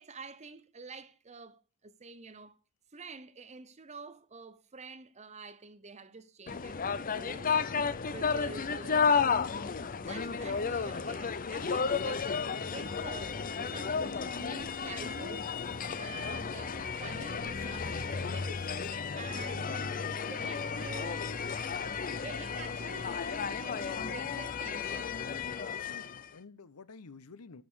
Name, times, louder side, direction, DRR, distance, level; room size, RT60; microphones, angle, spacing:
voice 1, 0.0-2.6 2.9-7.6 8.1-9.1 9.6-12.3 12.7-15.6 16.0-20.0 20.3-21.3 21.8-25.2, right 4 dB, 30° right, 0.8 m, -48 dB
sound 1, 6.5-26.3, left 5 dB, 40° left, 0.7 m, -33 dB
voice 2, 8.1-8.5 25.7-27.6, left 4 dB, 80° left, 0.9 m, -51 dB
13.0 x 5.4 x 6.2 m
head